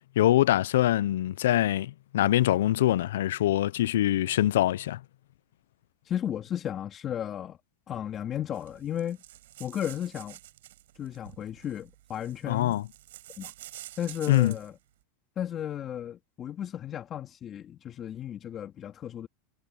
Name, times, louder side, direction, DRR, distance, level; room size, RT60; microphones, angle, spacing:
voice 1, 0.2-5.0 12.5-12.8 14.3-14.5, left 13 dB, 90° left, 0.5 m, -24 dB
voice 2, 6.0-7.6 7.9-9.2 9.6-10.4 10.9-12.8 13.4-13.5 14.0-14.8 15.4-19.3, left 10 dB, 30° left, 2.9 m, -34 dB
sound 1, 8.5-14.7, right 15 dB, 85° right, 6.9 m, -49 dB
supercardioid pair, 140°, 0 cm